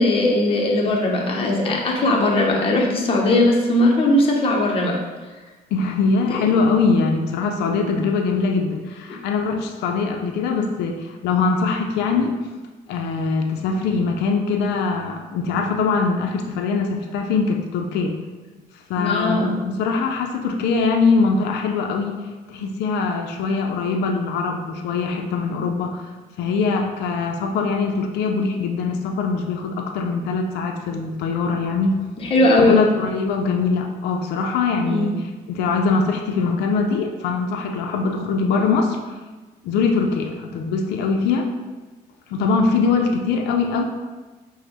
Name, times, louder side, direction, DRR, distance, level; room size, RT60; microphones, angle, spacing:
voice 1, 0.0-4.9 6.3-6.4 19.0-19.5 32.3-32.8 34.8-35.1 38.6-38.7, left 1 dB, 35° left, -1 dB, 0.7 m, -19 dB
voice 2, 5.7-12.4 12.9-18.1 18.9-22.2 22.5-26.0 26.4-32.0 32.6-39.2 39.6-41.5 42.3-43.8, left 4 dB, 80° left, 3 dB, 0.4 m, -22 dB
5.1 x 2.1 x 2.9 m, 1.2 s
cardioid pair, 110°, 17 cm